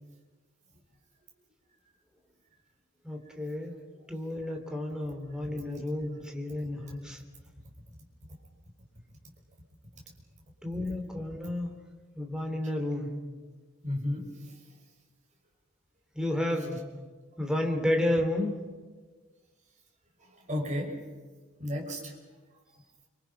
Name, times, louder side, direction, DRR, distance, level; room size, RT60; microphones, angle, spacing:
voice 1, 3.0-3.8 4.1-7.2 10.6-11.8 12.2-13.2 16.1-16.9 17.4-18.7, left 1 dB, 5° right, 3 dB, 2.9 m, -31 dB
voice 2, 13.8-14.5 20.3-20.9 21.6-22.1, left 1 dB, 35° right, 0 dB, 6.0 m, -33 dB
30.0 x 25.0 x 5.8 m, 1.4 s
head